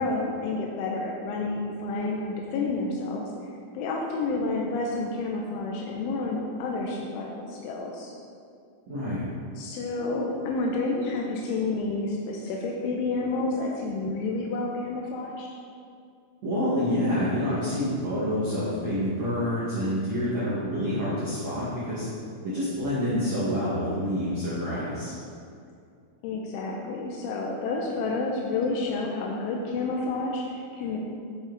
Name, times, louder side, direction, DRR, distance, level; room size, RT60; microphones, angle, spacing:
voice 1, 0.0-3.3 3.7-8.1 9.6-15.5 26.2-31.0, left 3 dB, 85° left, -1 dB, 3.1 m, -30 dB
voice 2, 8.9-9.2 16.4-22.1 22.4-25.1, equal, 55° right, -10 dB, 2.1 m, -27 dB
10.0 x 6.4 x 4.0 m, 2.4 s
omnidirectional pair, 5.5 m